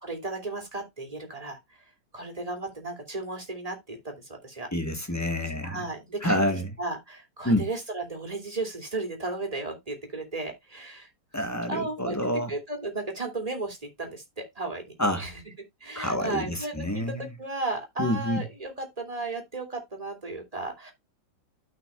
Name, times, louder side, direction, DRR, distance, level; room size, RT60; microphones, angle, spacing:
voice 1, 0.0-1.8 2.1-4.7 5.6-6.4 6.8-11.1 11.7-12.2 12.5-14.8 15.2-15.3 15.8-20.9, right 2 dB, 20° right, 2.7 m, -34 dB
voice 2, 4.7-5.9 6.2-6.7 7.4-7.7 11.3-12.5 15.0-15.2 15.9-17.3 18.0-18.4, left 1 dB, 10° left, 1.0 m, -27 dB
13.0 x 5.8 x 2.3 m
omnidirectional pair, 2.0 m